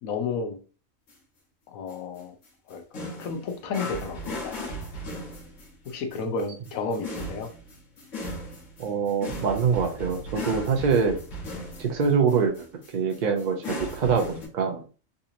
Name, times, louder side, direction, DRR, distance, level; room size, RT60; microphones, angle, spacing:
voice 1, 0.0-0.6 1.7-2.3 2.7-4.8 5.8-7.5, left 4 dB, 90° left, 5 dB, 1.1 m, -32 dB
sound 1, 1.1-1.2 1.9-2.2 2.4-14.5, equal, 65° left, 1.5 m, -37 dB
voice 2, 8.8-11.2 11.8-12.7 12.9-14.8, right 5 dB, 55° right, 3 dB, 0.5 m, -24 dB
3.8 x 2.8 x 2.5 m, 0.36 s
omnidirectional pair, 1.4 m